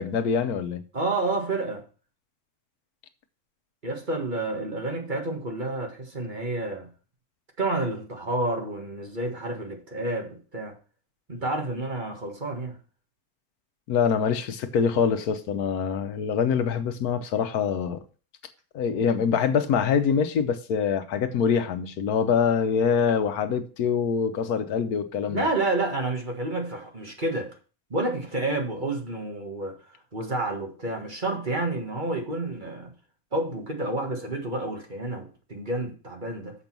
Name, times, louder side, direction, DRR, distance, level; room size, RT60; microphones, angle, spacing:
voice 1, 0.0-0.8 13.9-18.0 18.7-25.5, left 6 dB, 85° left, 1.3 m, -24 dB
voice 2, 0.9-1.8 3.8-6.9 7.6-10.7 11.3-12.8 25.3-27.5 27.9-29.7 30.1-32.9 33.3-36.5, right 2 dB, 35° right, 1.7 m, -29 dB
7.1 x 5.3 x 5.9 m
omnidirectional pair, 1.6 m